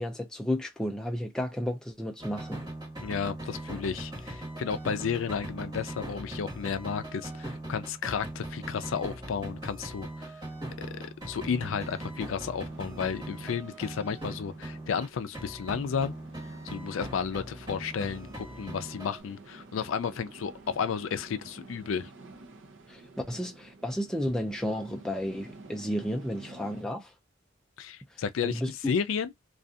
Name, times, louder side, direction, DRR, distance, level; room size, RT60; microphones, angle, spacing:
voice 1, 0.0-2.6 22.9-23.0 23.3-27.1 28.4-28.7, equal, 5° left, 0.3 m, -32 dB
sound 1, 2.2-15.1 15.3-19.2, right 1 dB, 20° right, 1.4 m, -40 dB
voice 2, 3.0-10.3 10.8-16.2 16.6-22.1 27.8-29.3, left 6 dB, 85° left, 0.4 m, -32 dB
sound 2, 11.5-26.8, right 2 dB, 70° right, 0.5 m, -50 dB
2.6 x 2.4 x 2.3 m
head